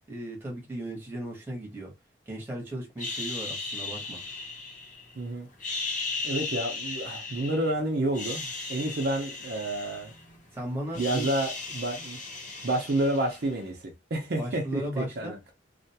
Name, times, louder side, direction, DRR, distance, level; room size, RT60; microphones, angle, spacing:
voice 1, 0.1-1.9 2.3-4.2 10.5-11.3 14.4-15.3, right 1 dB, 10° right, 0.9 m, -36 dB
sound 1, 3.0-5.1 5.5-7.7 8.1-10.5 10.7-13.6, left 3 dB, 45° left, 0.8 m, -36 dB
voice 2, 5.2-5.5 6.2-10.1 11.0-12.2 12.6-13.8 14.1-15.4, right 1 dB, 55° right, 0.5 m, -29 dB
2.4 x 2.2 x 2.7 m
head